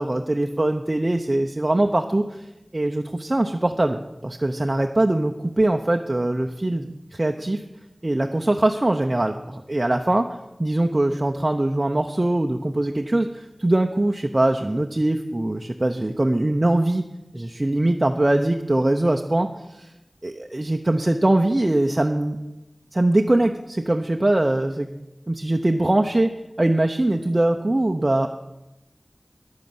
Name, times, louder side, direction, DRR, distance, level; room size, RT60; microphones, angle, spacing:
voice 1, 0.0-2.4 2.7-7.6 8.0-10.3 10.6-17.0 17.3-19.5 19.8-19.9 20.2-22.4 22.9-24.9 25.3-26.3 26.6-28.3, right 1 dB, 40° right, 3 dB, 0.7 m, -22 dB
10.5 x 9.5 x 7.8 m, 0.96 s
wide cardioid pair, 50°, 0 cm